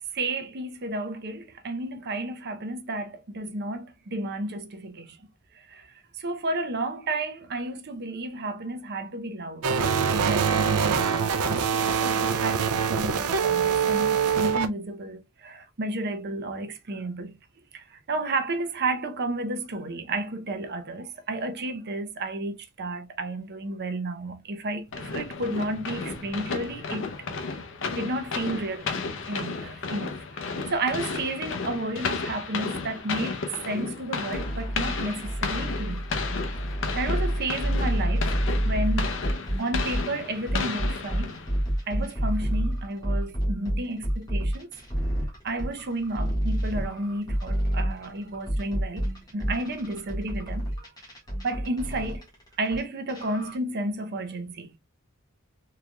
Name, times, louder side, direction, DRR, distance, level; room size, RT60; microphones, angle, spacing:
voice 1, 0.1-5.2 5.5-9.8 10.0-17.4 17.7-27.4 27.9-28.9 29.2-36.0 36.9-38.4 38.6-41.4 41.9-44.7 45.4-50.7 51.4-52.3 52.6-54.7, right 2 dB, 50° right, 0.7 m, -32 dB
sound 1, 9.6-14.7, right 6 dB, 90° right, 0.5 m, -24 dB
sound 2, 24.9-41.7, left 4 dB, 60° left, 0.7 m, -33 dB
sound 3, 34.3-40.1 40.5-52.8 53.1-53.6, equal, 15° left, 1.5 m, -28 dB
3.8 x 3.2 x 2.2 m
head